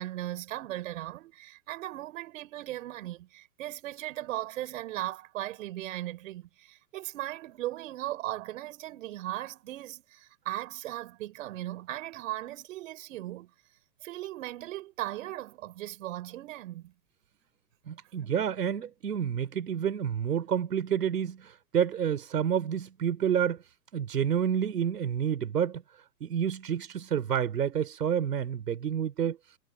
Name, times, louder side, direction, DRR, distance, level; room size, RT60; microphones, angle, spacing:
voice 1, 0.0-13.5 14.0-16.9, right 15 dB, 50° right, 5.4 m, -38 dB
voice 2, 17.9-23.6 23.9-25.8 26.2-29.4, right 8 dB, 70° right, 4.6 m, -29 dB
hypercardioid pair, 125°, 48 cm